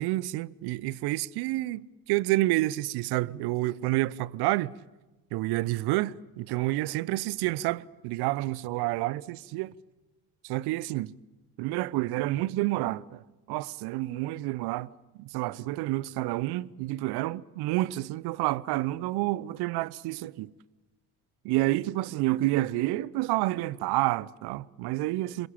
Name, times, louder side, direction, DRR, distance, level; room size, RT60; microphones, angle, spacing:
voice 1, 0.0-4.7 5.3-9.7 10.4-11.1 11.6-13.2 13.5-14.9 15.2-20.5 21.4-25.5, right 18 dB, 55° right, 0.8 m, -29 dB
26.5 x 22.0 x 8.7 m
figure-of-eight pair, 55°, 45 cm